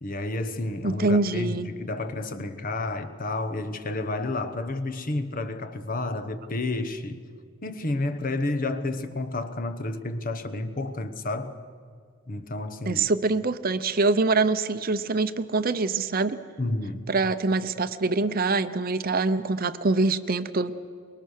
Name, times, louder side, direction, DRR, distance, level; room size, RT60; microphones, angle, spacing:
voice 1, 0.0-7.2 7.6-11.6 12.3-13.1 16.6-17.0, left 2 dB, 40° left, 1.0 m, -30 dB
voice 2, 0.8-1.7 12.8-16.4 17.1-20.7, right 3 dB, 40° right, 0.7 m, -24 dB
25.0 x 22.0 x 6.5 m
head